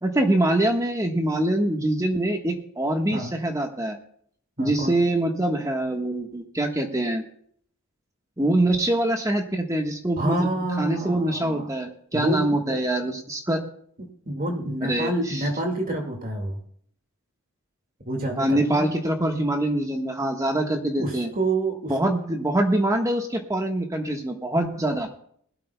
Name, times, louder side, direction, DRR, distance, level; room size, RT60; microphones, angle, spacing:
voice 1, 0.0-4.0 4.6-7.2 8.4-10.5 10.8-13.6 14.8-15.5 18.4-21.3 21.9-25.1, right 1 dB, 15° right, 3 dB, 1.3 m, -24 dB
voice 2, 4.6-4.9 10.2-11.7 12.1-12.8 14.0-16.6 18.1-18.9 21.0-22.1, right 1 dB, 40° right, 2 dB, 2.1 m, -28 dB
20.5 x 12.5 x 2.3 m, 0.62 s
head